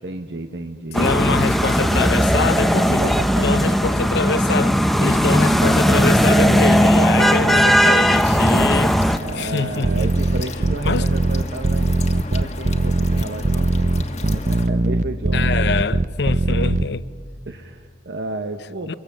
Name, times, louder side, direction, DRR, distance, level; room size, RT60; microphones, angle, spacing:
voice 1, 0.0-1.0 2.9-3.8 7.0-7.6 9.2-13.9 14.3-15.7 17.5-18.9, right 2 dB, 80° right, 1.0 m, -32 dB
voice 2, 0.9-3.2 3.4-10.1 10.8-11.1 15.3-17.0 18.9-19.0, left 4 dB, 70° left, 0.6 m, -24 dB
sound 1, 0.9-9.2, equal, ahead, 0.7 m, -17 dB
sound 2, 8.1-14.7, left 2 dB, 40° left, 1.3 m, -34 dB
sound 3, 9.8-16.8, right 2 dB, 40° right, 0.6 m, -20 dB
24.0 x 23.5 x 7.3 m
head